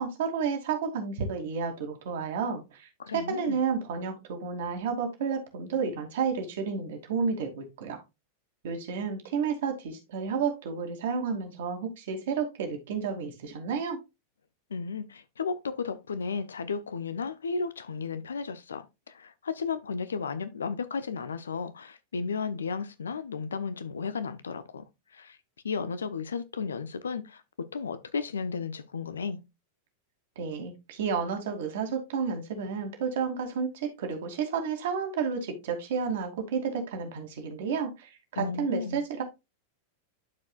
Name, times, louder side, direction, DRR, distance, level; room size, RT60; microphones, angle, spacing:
voice 1, 0.0-8.0 8.6-14.0 30.4-39.2, right 6 dB, 55° right, 2.5 m, -31 dB
voice 2, 3.0-3.6 14.7-24.8 25.1-25.4 25.6-27.4 27.7-29.4 38.4-39.0, left 5 dB, 70° left, 0.8 m, -34 dB
12.0 x 4.8 x 2.4 m
figure-of-eight pair, 90°, 0 cm